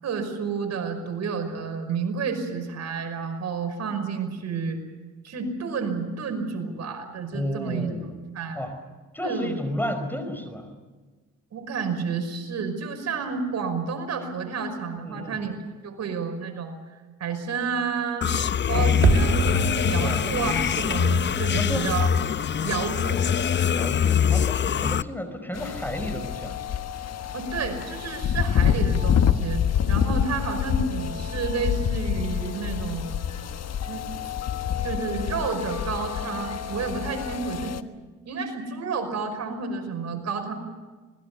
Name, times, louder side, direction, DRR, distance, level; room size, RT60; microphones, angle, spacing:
voice 1, 0.0-4.8 5.2-7.9 8.3-8.6 9.2-9.6 11.5-15.5 15.8-16.8 17.2-18.3 18.7-22.1 22.6-23.2 27.3-33.1 33.9-34.1 34.8-37.7 38.3-40.5, right 5 dB, 60° right, 5 dB, 5.5 m, -30 dB
voice 2, 7.3-8.2 8.5-8.7 9.1-10.8 15.0-15.4 18.7-19.0 20.0-20.3 21.5-21.9 23.7-26.6, left 1 dB, 5° left, 8 dB, 4.7 m, -32 dB
sound 1, 18.2-25.0, left 8 dB, 40° left, 0.7 m, -23 dB
sound 2, 19.0-24.0 24.2-24.3, right 5 dB, 45° right, 1.7 m, -29 dB
sound 3, 25.5-37.8, left 8 dB, 55° left, 1.3 m, -27 dB
26.5 x 21.0 x 7.0 m, 1.3 s
cardioid pair, 90°, 30 cm